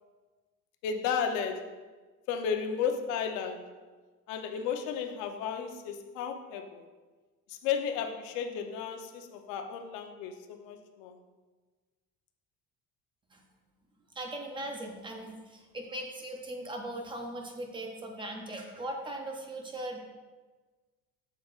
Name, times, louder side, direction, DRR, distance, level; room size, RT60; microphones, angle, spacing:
voice 1, 0.8-1.8 2.3-3.7 4.3-6.8 7.5-11.2, left 7 dB, 80° left, 5 dB, 0.7 m, -33 dB
voice 2, 14.2-20.0, right 1 dB, 15° right, 3 dB, 0.5 m, -39 dB
7.4 x 6.6 x 2.4 m, 1.3 s
cardioid pair, 175°, 30 cm